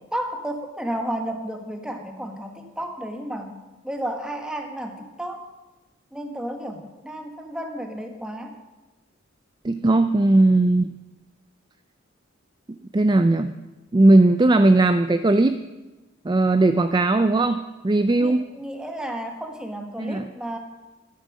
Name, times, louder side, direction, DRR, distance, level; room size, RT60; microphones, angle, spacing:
voice 1, 0.1-3.5 3.8-5.5 6.1-8.5 18.2-20.6, right 1 dB, 5° right, 4 dB, 1.4 m, -32 dB
voice 2, 9.6-10.9 12.7-13.5 13.9-15.6 16.2-18.5 20.0-20.3, right 2 dB, 20° right, 9 dB, 0.4 m, -18 dB
13.5 x 10.5 x 6.2 m, 1.1 s
head